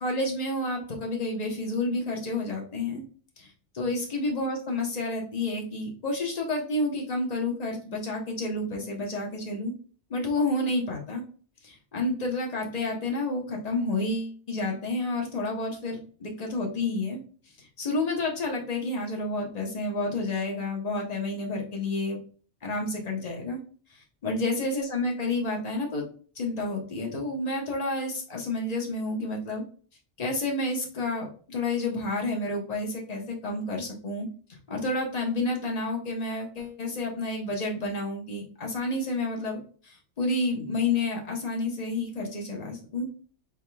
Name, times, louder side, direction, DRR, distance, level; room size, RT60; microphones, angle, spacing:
voice 1, 0.0-3.0 3.4-3.5 3.8-9.7 10.1-11.2 11.6-17.2 17.6-22.2 22.6-23.6 24.2-26.0 26.4-29.6 30.2-43.1, left 2 dB, 35° left, 0 dB, 1.1 m, -30 dB
4.5 x 3.6 x 2.3 m, 0.42 s
omnidirectional pair, 1.2 m